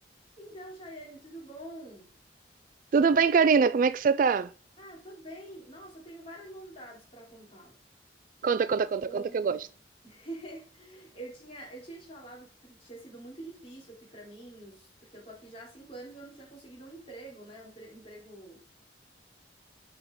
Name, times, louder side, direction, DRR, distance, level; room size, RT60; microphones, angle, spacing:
voice 1, 0.4-2.1 4.8-7.8 9.0-9.6 10.0-18.6, right 1 dB, 30° left, 3.6 m, -46 dB
voice 2, 2.9-4.5 8.4-9.6, right 5 dB, 45° right, 0.3 m, -23 dB
7.0 x 5.3 x 5.5 m
head